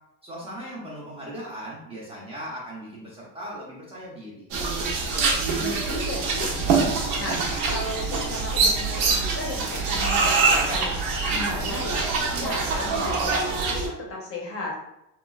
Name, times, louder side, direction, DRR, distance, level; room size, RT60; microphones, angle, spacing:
voice 1, 0.2-4.5, equal, 15° right, -7 dB, 0.4 m, -38 dB
sound 1, 4.5-13.9, right 4 dB, 75° right, 0.8 m, -24 dB
voice 2, 5.6-6.5 7.2-7.4 7.7-11.0 11.3-12.0 12.4-14.8, left 2 dB, 35° left, -1 dB, 0.5 m, -34 dB
sound 2, 6.2-13.2, equal, 40° right, 0.9 m, -42 dB
2.9 x 2.2 x 2.3 m, 0.82 s
cardioid pair, 140°, 43 cm